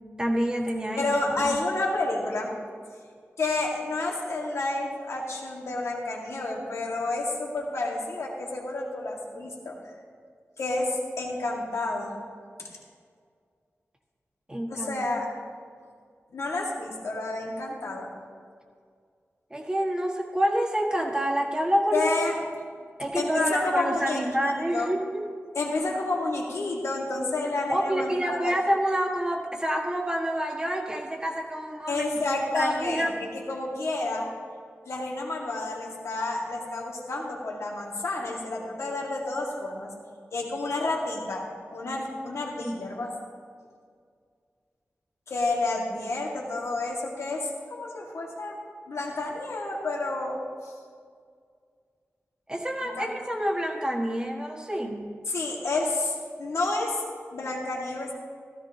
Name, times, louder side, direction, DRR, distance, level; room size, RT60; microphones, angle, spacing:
voice 1, 0.2-1.1 1.3-1.5 14.5-15.1 19.5-22.2 23.0-25.2 27.7-32.0 32.5-33.2 42.6-42.8 52.5-55.1, equal, 15° right, 0 dB, 1.7 m, -28 dB
voice 2, 1.0-2.5 3.4-9.8 10.6-12.1 12.6-12.7 14.7-15.3 16.3-18.1 21.9-22.4 23.1-24.9 25.5-28.6 31.9-34.3 34.9-39.9 40.3-43.1 45.3-48.6 48.9-50.7 52.8-53.1 55.3-57.0 57.3-58.1, left 2 dB, 85° left, -2 dB, 2.0 m, -30 dB
15.5 x 14.0 x 2.9 m, 2.1 s
wide cardioid pair, 80°, 5 cm